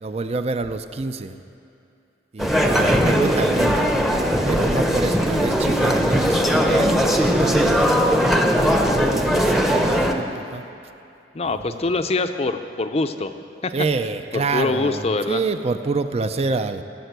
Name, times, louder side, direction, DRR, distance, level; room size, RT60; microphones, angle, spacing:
voice 1, 0.0-1.4 2.3-3.9 4.4-8.0 8.3-10.6 11.5-11.8 13.7-16.8, right 3 dB, 35° right, 9 dB, 0.4 m, -27 dB
sound 1, 2.4-10.1, equal, ahead, 0.7 m, -19 dB
voice 2, 11.3-13.3 13.6-13.7 14.3-15.4, left 3 dB, 35° left, 9 dB, 0.5 m, -24 dB
16.0 x 6.8 x 8.0 m, 2.7 s
head